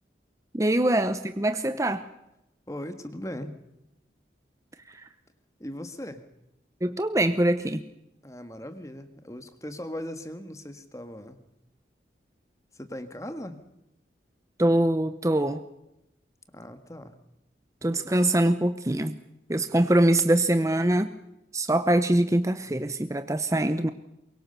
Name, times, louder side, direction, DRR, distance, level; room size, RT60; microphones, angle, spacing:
voice 1, 0.5-2.0 4.9-5.0 6.8-7.8 14.6-15.6 17.8-19.2 19.5-21.1 21.5-23.9, right 1 dB, 15° right, 10 dB, 0.8 m, -23 dB
voice 2, 2.7-3.5 5.6-6.2 8.2-11.4 12.7-13.6 16.5-17.1, left 1 dB, 20° left, 9 dB, 1.6 m, -38 dB
24.0 x 23.0 x 6.8 m, 0.88 s
head